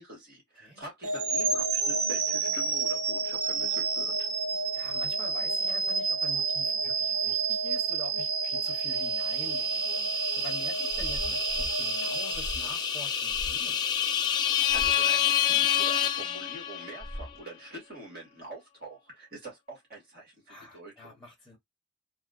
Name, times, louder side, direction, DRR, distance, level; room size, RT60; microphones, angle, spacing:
voice 1, 0.0-4.3 14.7-21.2, right 2 dB, 50° right, 2.1 m, -45 dB
sound 1, 1.0-13.1, right 4 dB, 90° right, 0.7 m, -29 dB
voice 2, 4.7-10.0 10.3-13.9 20.5-21.6, left 1 dB, ahead, 1.2 m, -47 dB
sound 2, 9.0-17.0, left 9 dB, 20° left, 0.5 m, -29 dB
sound 3, 10.9-11.8 12.3-12.7 13.3-13.6 14.7-15.0 17.0-17.4, equal, 30° right, 1.0 m, -39 dB
4.0 x 2.4 x 2.4 m
head